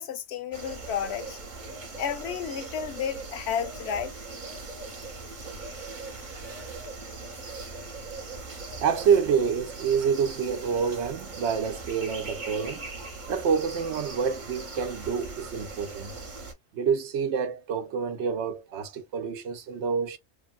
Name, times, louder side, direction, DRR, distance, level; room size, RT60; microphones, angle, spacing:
voice 1, 0.0-1.4 2.0-4.1, left 8 dB, 75° left, 0.8 m, -32 dB
sound 1, 0.5-16.5, right 3 dB, 45° right, 1.0 m, -40 dB
voice 2, 8.8-12.9 13.3-16.1 16.7-20.2, right 6 dB, 80° right, 0.9 m, -27 dB
3.2 x 2.2 x 2.4 m
omnidirectional pair, 1.1 m